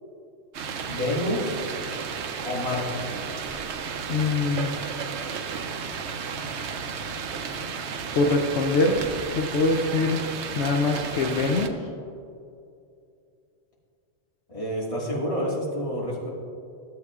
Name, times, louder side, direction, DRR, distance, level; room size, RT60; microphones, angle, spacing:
sound 1, 0.5-11.7, right 6 dB, 80° right, 0.9 m, -33 dB
voice 1, 0.9-1.6 2.4-3.1 14.5-16.3, left 1 dB, 30° left, -5 dB, 1.9 m, -28 dB
voice 2, 4.1-4.8 8.1-10.3 10.5-11.8, left 3 dB, 80° left, 3 dB, 0.9 m, -23 dB
13.0 x 7.6 x 2.4 m, 2.5 s
omnidirectional pair, 1.2 m